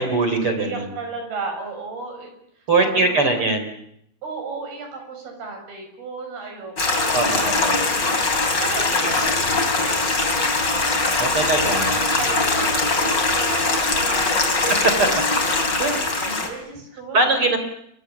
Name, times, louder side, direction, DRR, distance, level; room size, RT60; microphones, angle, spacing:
voice 1, 0.0-0.9 2.7-3.7 7.1-7.8 11.2-12.0 14.7-15.1 15.8-15.9 16.3-16.5 17.1-17.6, right 3 dB, 35° right, 7 dB, 4.2 m, -21 dB
voice 2, 0.6-2.3 2.6-3.4 4.2-11.1 11.6-14.8 15.1-17.3, right 4 dB, 75° right, 4 dB, 8.9 m, -35 dB
Stream, 6.8-16.5, left 3 dB, 30° left, 4.1 m, -21 dB
30.0 x 24.0 x 7.1 m, 0.74 s
omnidirectional pair, 4.4 m